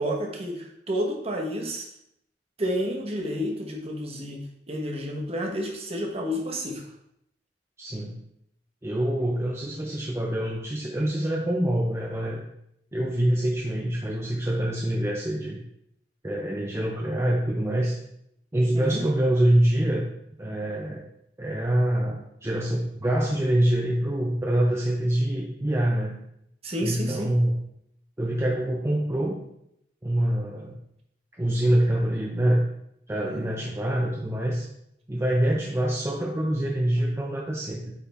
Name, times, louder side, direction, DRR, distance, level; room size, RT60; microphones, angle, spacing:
voice 1, 0.0-1.9 2.6-4.4 4.7-6.8 18.7-19.0 26.6-27.3 33.2-33.5, equal, 35° right, 0 dB, 1.2 m, -30 dB
voice 2, 7.8-8.1 8.8-12.4 12.9-15.6 16.2-18.0 18.5-20.0 20.4-21.0 21.4-26.2 26.8-27.6 28.2-29.4 30.0-30.7 31.4-32.6 33.1-34.7 35.1-37.9, right 1 dB, 15° right, -2 dB, 0.6 m, -25 dB
8.4 x 3.7 x 3.5 m, 0.76 s
head